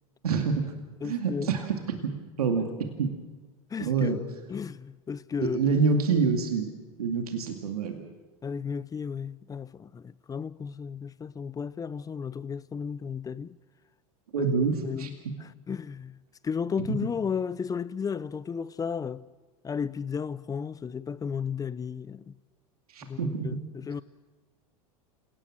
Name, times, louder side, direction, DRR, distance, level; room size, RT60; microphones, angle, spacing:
voice 1, 0.2-0.7 1.0-2.6 3.0-3.1 3.8-4.2 5.4-6.7 7.0-8.0 14.3-15.1 16.8-16.9 22.9-23.5, right 5 dB, 85° right, 2.3 m, -27 dB
voice 2, 1.0-1.6 2.5-2.6 3.7-4.2 4.5-5.8 8.4-13.6 14.4-14.5 14.8-16.2 16.4-19.2 19.6-22.3 23.0-24.0, left 6 dB, 20° left, 0.6 m, -34 dB
28.0 x 18.0 x 6.2 m
hypercardioid pair, 95°, 19 cm